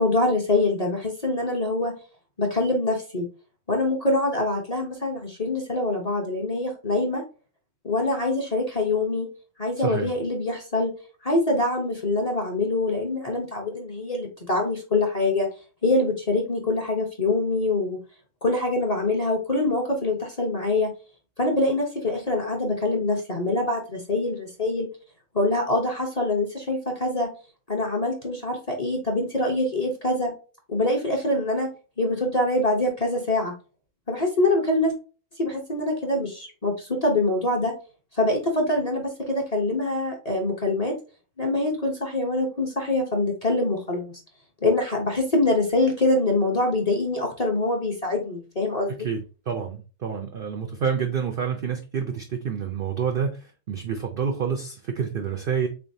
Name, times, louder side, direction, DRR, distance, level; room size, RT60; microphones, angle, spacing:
voice 1, 0.0-1.9 2.4-3.3 3.7-7.2 7.8-9.3 9.6-10.9 11.2-15.5 15.8-18.0 18.4-20.9 21.4-24.9 25.3-27.3 27.7-30.3 30.7-31.7 32.0-33.5 34.1-34.9 35.4-37.7 38.1-40.9 41.4-44.1 44.6-49.1, left 2 dB, 35° left, 0 dB, 0.6 m, -24 dB
voice 2, 9.8-10.1 48.9-55.7, right 7 dB, 80° right, 4 dB, 0.5 m, -28 dB
3.8 x 3.4 x 2.6 m, 0.34 s
omnidirectional pair, 1.6 m